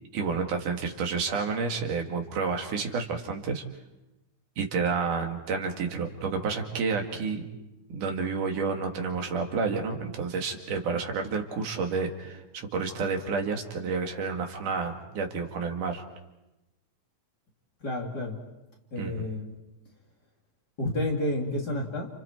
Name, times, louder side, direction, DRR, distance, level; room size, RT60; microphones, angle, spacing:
voice 1, 0.1-3.6 4.6-7.4 7.9-16.0 19.0-19.2, right 5 dB, 80° right, 3 dB, 3.6 m, -30 dB
voice 2, 17.8-18.4 18.9-19.6 20.8-22.1, left 1 dB, 30° left, -1 dB, 3.3 m, -30 dB
30.0 x 30.0 x 4.6 m, 0.99 s
omnidirectional pair, 3.6 m